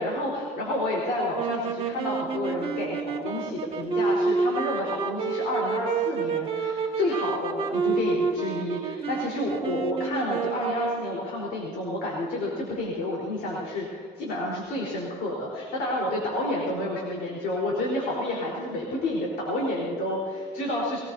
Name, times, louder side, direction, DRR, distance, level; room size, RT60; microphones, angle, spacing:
voice 1, 0.0-21.0, left 1 dB, 65° left, -3 dB, 4.0 m, -30 dB
sound 1, 1.3-11.3, right 5 dB, 35° right, 1.7 m, -29 dB
22.5 x 19.5 x 2.7 m, 2.2 s
cardioid pair, 155°, 17 cm